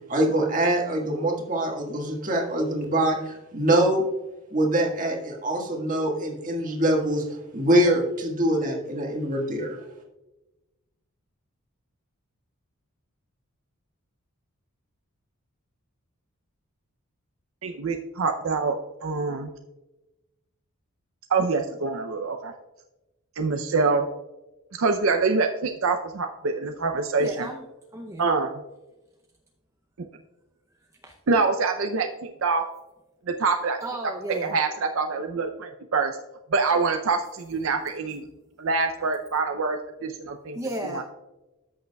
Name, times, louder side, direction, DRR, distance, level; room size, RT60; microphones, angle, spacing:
voice 1, 0.1-4.0 4.5-7.2 7.5-9.8, right 1 dB, 35° right, 0 dB, 1.6 m, -24 dB
voice 2, 17.6-18.8 19.0-19.5 21.3-22.5 23.4-24.1 24.7-27.5 28.2-28.5 31.3-32.6 33.3-33.8 34.4-36.2 36.5-38.2 38.6-40.6 40.9-41.0, right 4 dB, 65° right, 5 dB, 0.5 m, -25 dB
voice 3, 27.2-27.6 27.9-28.3 31.0-31.1 33.8-34.6 40.5-41.0, right 1 dB, 15° right, 1 dB, 0.6 m, -33 dB
13.5 x 6.5 x 2.3 m, 1.0 s
head